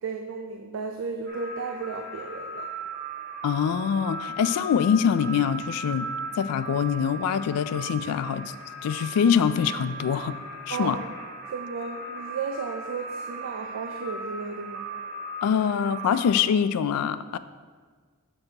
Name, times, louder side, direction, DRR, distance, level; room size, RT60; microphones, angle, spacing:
voice 1, 0.0-2.7 10.7-11.0 11.5-14.9, right 5 dB, 60° right, 5 dB, 0.4 m, -34 dB
sound 1, 1.3-16.3, right 2 dB, 45° right, 1.3 m, -37 dB
voice 2, 3.4-6.1 6.4-8.5 8.8-10.4 10.7-11.0 15.4-17.4, left 7 dB, 85° left, 13 dB, 0.3 m, -24 dB
8.8 x 6.6 x 2.9 m, 1.5 s
head